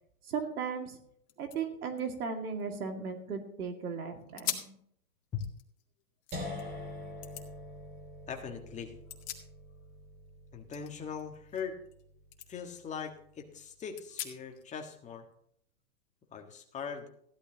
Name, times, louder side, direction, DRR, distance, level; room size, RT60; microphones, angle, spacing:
voice 1, 0.2-1.0 1.4-4.7, right 6 dB, 75° right, 5 dB, 2.4 m, -36 dB
sound 1, 0.9-1.0 1.2-3.4 3.9-4.0 4.4-4.8 5.2-6.6 7.2-7.5 8.8-9.9 10.2-12.0 12.3-12.5 13.0-13.1 13.9-14.7, left 12 dB, 45° left, 1.9 m, -43 dB
sound 2, 6.3-12.2, left 2 dB, 25° right, 3.0 m, -45 dB
voice 2, 8.3-8.9 10.5-11.8 12.5-15.3 16.3-17.1, left 7 dB, 15° left, 3 dB, 1.6 m, -40 dB
15.5 x 11.5 x 2.9 m, 0.67 s
hypercardioid pair, 140°, 44 cm